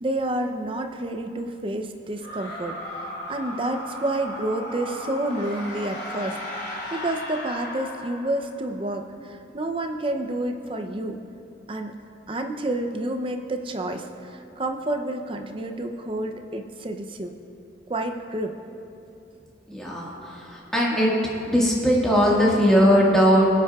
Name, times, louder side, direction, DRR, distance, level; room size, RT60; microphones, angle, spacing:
voice 1, 0.0-6.4 6.6-11.2 11.7-11.9 12.3-17.3 17.9-18.6, right 1 dB, 30° right, 5 dB, 0.5 m, -29 dB
sound 1, 2.2-8.6, left 1 dB, 60° left, 2.5 m, -36 dB
voice 2, 19.7-21.1 21.5-23.5, equal, 5° left, -6 dB, 1.6 m, -19 dB
23.5 x 8.5 x 2.3 m, 2.7 s
head